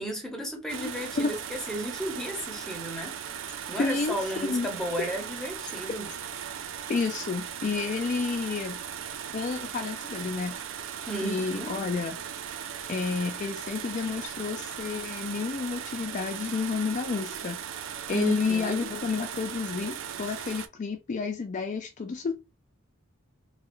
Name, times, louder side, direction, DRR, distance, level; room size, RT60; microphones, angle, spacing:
voice 1, 0.0-3.2 3.7-6.1 11.1-11.8 18.1-18.9, right 1 dB, ahead, 0.8 m, -34 dB
sound 1, 0.7-20.7, right 8 dB, 65° right, 0.4 m, -38 dB
voice 2, 0.8-1.3 3.8-4.7 5.0-5.1 6.9-8.8 9.3-10.6 11.2-12.2 12.9-17.6 18.1-22.3, left 4 dB, 35° left, 0.3 m, -30 dB
3.1 x 2.4 x 3.0 m
head